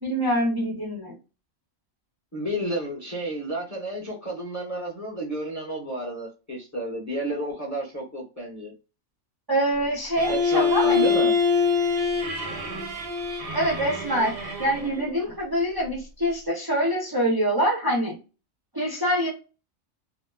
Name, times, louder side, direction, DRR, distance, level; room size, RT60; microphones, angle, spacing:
voice 1, 0.0-1.1 9.5-11.1 13.5-18.1 18.7-19.3, equal, 25° right, -4 dB, 0.5 m, -25 dB
voice 2, 2.3-8.7 10.3-11.3, right 1 dB, 15° left, -4 dB, 0.7 m, -31 dB
Bowed string instrument, 10.2-15.1, left 5 dB, 50° right, 0.8 m, -25 dB
2.8 x 2.0 x 2.2 m, 0.31 s
omnidirectional pair, 1.4 m